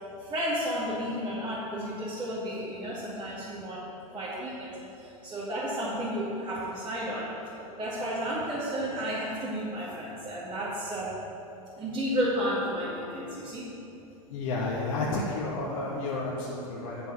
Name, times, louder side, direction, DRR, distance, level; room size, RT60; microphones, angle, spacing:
voice 1, 0.2-3.9 4.1-7.3 7.7-11.2 11.8-13.7, equal, 25° right, -8 dB, 2.4 m, -32 dB
voice 2, 14.3-17.1, left 2 dB, 65° left, -4 dB, 1.3 m, -31 dB
7.7 x 7.2 x 7.1 m, 2.8 s
hypercardioid pair, 105°, 19 cm